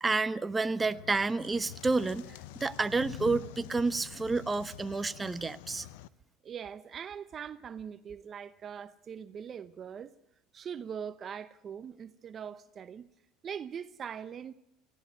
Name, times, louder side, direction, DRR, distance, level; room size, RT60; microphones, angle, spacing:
voice 1, 0.0-2.3 2.6-5.9, right 3 dB, 15° right, 1.0 m, -30 dB
sound 1, 0.8-6.1, left 13 dB, 80° left, 0.7 m, -46 dB
voice 2, 6.4-10.1 10.5-13.1 13.4-14.5, right 7 dB, 40° right, 0.8 m, -41 dB
18.5 x 15.5 x 9.6 m
supercardioid pair, 90°, 0 cm